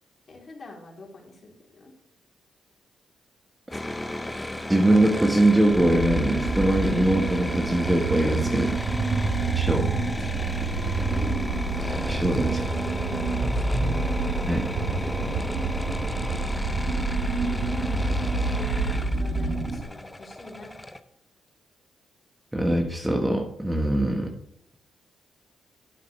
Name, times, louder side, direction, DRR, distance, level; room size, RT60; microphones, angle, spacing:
voice 1, 0.3-1.9 9.7-10.7 11.1-11.7 12.5-13.9 14.9-15.6 17.4-20.7 24.1-24.3, left 2 dB, 40° left, -1 dB, 3.4 m, -45 dB
sound 1, 3.7-21.0, left 1 dB, 10° left, 0.7 m, -34 dB
voice 2, 4.7-8.8 9.5-9.9 12.1-12.6 14.5-14.7 22.5-24.3, right 1 dB, 10° right, 2 dB, 1.4 m, -22 dB
sound 2, 5.7-19.8, right 3 dB, 80° right, 1.9 m, -27 dB
11.5 x 9.4 x 3.3 m, 0.74 s
cardioid pair, 90°, 0 cm